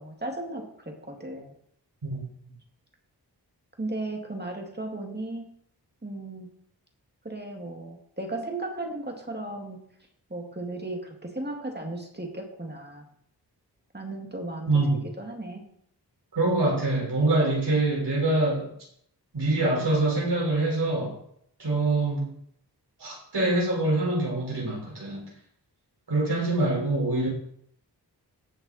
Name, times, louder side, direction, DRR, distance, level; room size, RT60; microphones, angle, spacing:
voice 1, 0.0-1.5 3.8-5.5 6.0-6.5 7.2-9.8 10.3-13.1 13.9-14.9 15.2-15.7, right 2 dB, 25° right, 2 dB, 2.2 m, -35 dB
voice 2, 14.7-15.0 16.3-18.7 19.3-21.1 21.6-22.3 23.0-25.2 26.1-27.3, right 2 dB, 75° right, -4 dB, 4.8 m, -25 dB
16.5 x 5.9 x 4.3 m, 0.69 s
wide cardioid pair, 70°, 40 cm